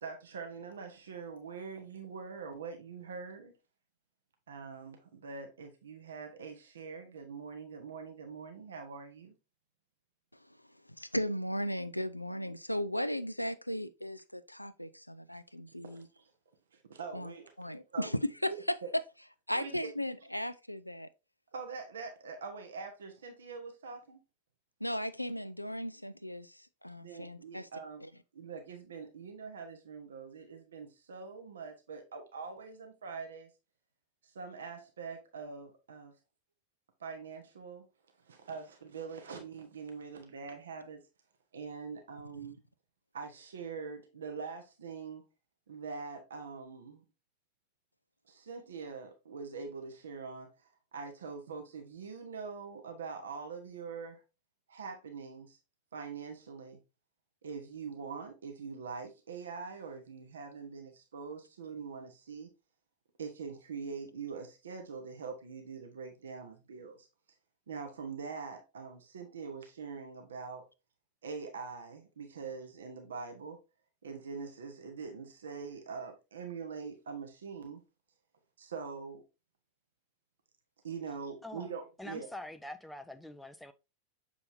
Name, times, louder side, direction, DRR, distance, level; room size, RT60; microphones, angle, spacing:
voice 1, 0.0-3.5 4.5-9.3 15.8-16.2 16.7-17.5 17.9-18.1 18.5-18.9 19.5-19.9 21.5-24.2 27.0-28.0 28.3-33.5 34.2-36.1 37.0-37.8 38.2-41.0 41.5-42.6 43.1-45.2 45.7-47.0 48.3-50.5 50.9-54.2 54.7-55.6 55.9-56.8 57.4-62.5 63.2-67.1 67.7-70.7 71.2-73.6 74.0-77.8 78.6-79.2 80.8-82.3, right 5 dB, 65° right, 1.1 m, -43 dB
voice 2, 11.0-16.1 17.1-17.3 17.6-18.5 19.5-21.1 24.8-27.7 28.0-28.1, equal, 90° left, 0.4 m, -36 dB
voice 3, 81.4-81.7 82.0-83.7, left 1 dB, 5° left, 0.5 m, -45 dB
6.7 x 5.2 x 2.7 m
figure-of-eight pair, 90°, 0 cm